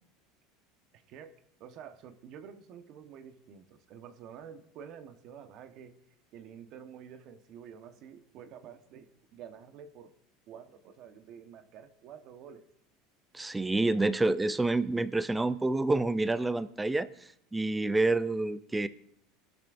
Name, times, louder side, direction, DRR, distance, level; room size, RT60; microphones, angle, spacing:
voice 1, 0.9-1.3 1.6-6.0 6.3-10.1 10.5-12.6, right 8 dB, 50° right, 8 dB, 1.1 m, -49 dB
voice 2, 13.3-17.1 17.5-18.9, right 2 dB, 10° right, 14 dB, 0.5 m, -28 dB
22.5 x 12.0 x 2.6 m, 0.73 s
supercardioid pair, 130°, 0 cm